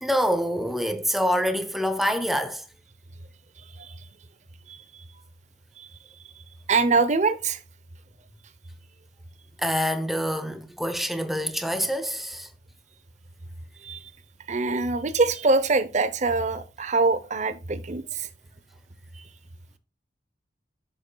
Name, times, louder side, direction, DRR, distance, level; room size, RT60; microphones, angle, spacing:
voice 1, 0.0-2.6 9.6-12.5, equal, ahead, 0.8 m, -26 dB
voice 2, 6.7-7.6 13.8-14.0 14.5-18.3, right 3 dB, 40° right, 0.8 m, -23 dB
10.5 x 7.8 x 2.3 m
head